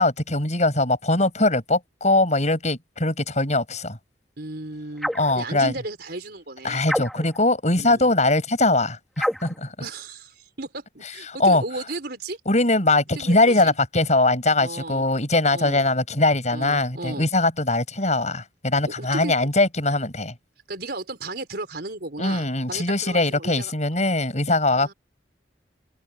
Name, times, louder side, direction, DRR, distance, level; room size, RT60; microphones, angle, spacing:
voice 1, 0.0-4.0 5.1-5.7 6.6-9.7 11.4-11.6 12.5-20.3 22.2-24.9, left 2 dB, 40° left, 7.9 m, -21 dB
voice 2, 4.4-6.9 7.8-8.1 9.8-12.4 13.1-13.7 14.6-15.1 15.5-15.8 16.5-17.3 18.8-19.3 20.7-23.7 24.7-24.9, right 2 dB, 60° right, 4.9 m, -35 dB
sound 1, 5.0-5.4 6.8-7.4 9.2-9.6, equal, ahead, 1.6 m, -27 dB
head